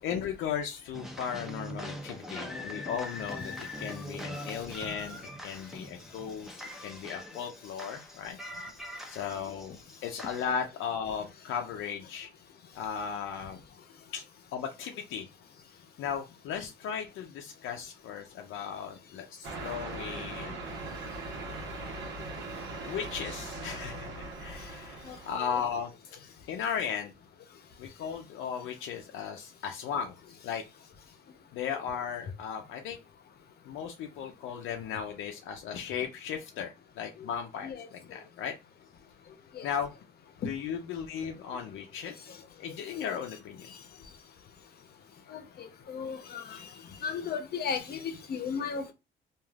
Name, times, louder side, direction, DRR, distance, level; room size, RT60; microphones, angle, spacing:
voice 1, 0.0-8.4 9.1-12.3 12.7-13.6 14.1-14.2 14.5-15.3 16.0-20.6 22.9-25.9 26.5-27.2 27.8-30.2 30.4-30.6 31.5-33.0 33.6-38.5 39.6-39.9 40.4-43.7 46.5-46.6, left 7 dB, 85° left, 0.5 m, -36 dB
sound 1, 0.9-10.5, left 1 dB, ahead, 0.6 m, -42 dB
sound 2, 19.4-25.6, right 2 dB, 65° right, 1.0 m, -40 dB
voice 2, 45.3-46.6 47.0-48.9, left 6 dB, 55° left, 0.7 m, -35 dB
3.2 x 2.4 x 2.3 m
cardioid pair, 90°, 20 cm